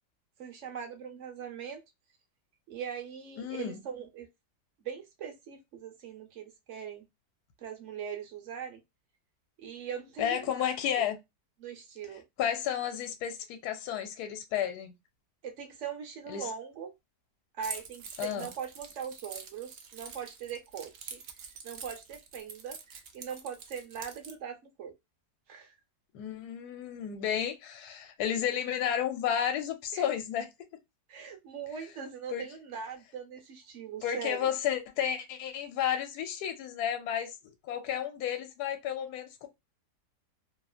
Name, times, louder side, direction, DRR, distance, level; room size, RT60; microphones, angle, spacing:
voice 1, 0.4-1.8 2.7-4.3 4.8-7.1 7.6-8.8 9.6-10.5 11.0-11.1 11.6-12.2 15.4-16.9 17.5-21.2 21.6-24.9 25.5-25.8 29.9-30.0 31.1-34.5, right 7 dB, 60° right, 0.9 m, -41 dB
voice 2, 3.4-3.8 10.2-11.2 12.4-15.0 16.3-16.5 18.2-18.5 26.1-30.5 32.3-32.5 34.0-39.5, left 9 dB, 75° left, 1.2 m, -32 dB
Keys jangling, 17.6-24.3, right 6 dB, 75° right, 0.5 m, -45 dB
2.9 x 2.4 x 2.3 m
omnidirectional pair, 1.8 m